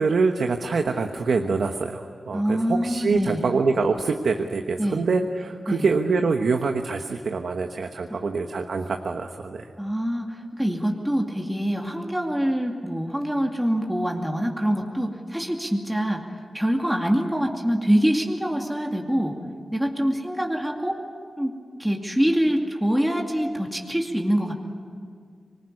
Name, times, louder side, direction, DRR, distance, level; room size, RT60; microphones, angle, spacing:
voice 1, 0.0-9.7, right 4 dB, 75° right, 5 dB, 1.2 m, -25 dB
voice 2, 2.3-3.4 4.8-5.0 5.7-5.9 8.1-8.2 9.8-16.2 16.5-19.4 19.7-21.0 21.4-21.5 21.8-24.5, equal, 5° right, 1 dB, 2.4 m, -25 dB
25.5 x 20.0 x 9.9 m, 2.1 s
wide cardioid pair, 90°, 0 cm